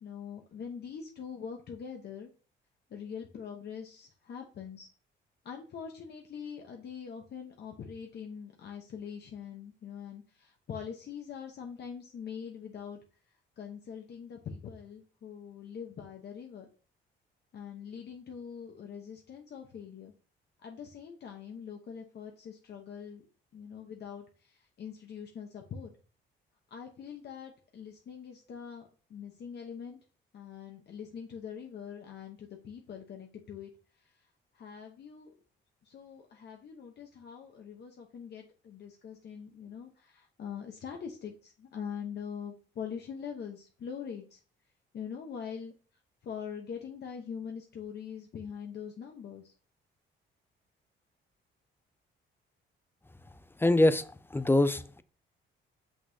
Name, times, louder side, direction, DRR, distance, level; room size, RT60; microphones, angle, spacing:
voice 1, 0.0-2.3 2.9-4.9 5.4-13.0 13.6-16.7 17.5-20.1 20.6-23.2 23.5-25.9 26.7-30.0 30.3-33.7 34.5-35.3 35.8-44.4 44.9-45.7 46.2-49.5, left 7 dB, 55° left, 1.0 m, -43 dB
voice 2, 53.6-54.0 54.3-55.0, left 1 dB, 10° left, 0.4 m, -23 dB
6.1 x 5.8 x 2.7 m
cardioid pair, 90°, 20 cm